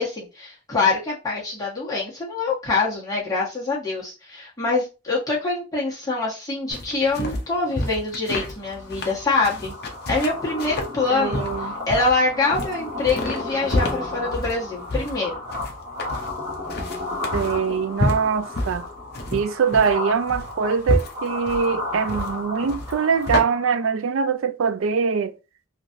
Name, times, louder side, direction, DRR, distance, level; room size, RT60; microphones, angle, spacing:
voice 1, 0.0-9.7 10.1-15.3, left 3 dB, 15° left, 1.2 m, -25 dB
sound 1, 6.7-23.4, left 1 dB, 50° left, 0.6 m, -29 dB
sound 2, 8.6-23.9, left 2 dB, 30° right, 1.0 m, -33 dB
voice 2, 11.1-11.7 17.3-18.8 19.3-25.3, right 6 dB, 75° right, 0.4 m, -23 dB
3.1 x 2.6 x 2.5 m
head